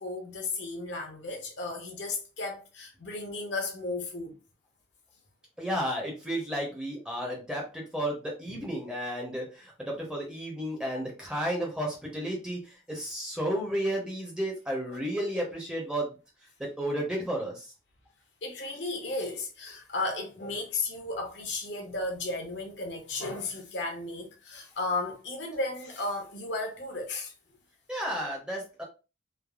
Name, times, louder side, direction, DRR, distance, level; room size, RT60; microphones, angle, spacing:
voice 1, 0.0-4.4 8.5-8.6 10.9-11.0 13.5-13.6 14.9-15.0 18.4-27.3, left 2 dB, 65° left, 0.8 m, -34 dB
voice 2, 5.6-16.2 16.6-17.7 27.9-28.8, equal, 5° right, 0.7 m, -32 dB
3.3 x 2.0 x 2.4 m
head